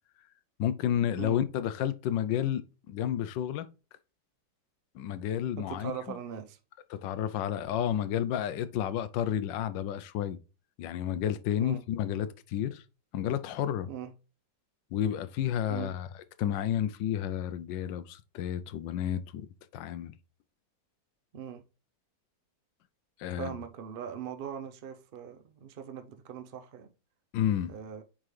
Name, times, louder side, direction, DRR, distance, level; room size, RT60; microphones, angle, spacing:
voice 1, 0.6-3.6 4.9-6.2 6.9-10.4 10.8-12.8 13.1-13.9 14.9-16.1 16.4-19.5 19.7-20.1 23.2-23.5 27.3-27.7, left 10 dB, 75° left, 1.2 m, -31 dB
voice 2, 5.6-6.6 11.6-11.8 13.9-14.1 15.7-15.9 21.3-21.6 23.4-26.9 27.7-28.0, right 8 dB, 90° right, 0.5 m, -40 dB
8.6 x 3.8 x 3.2 m
omnidirectional pair, 2.0 m